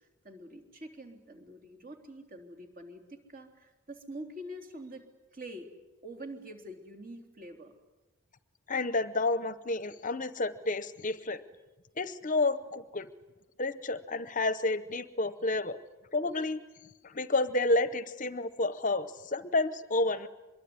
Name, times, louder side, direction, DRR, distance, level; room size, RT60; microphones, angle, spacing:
voice 1, 0.0-5.7 6.0-7.7, right 1 dB, 40° right, 5 dB, 3.6 m, -46 dB
voice 2, 8.7-11.4 12.0-13.1 13.6-15.8 16.1-16.6 17.0-20.3, left 2 dB, 35° left, 13 dB, 0.8 m, -30 dB
25.5 x 22.5 x 9.7 m, 1.1 s
head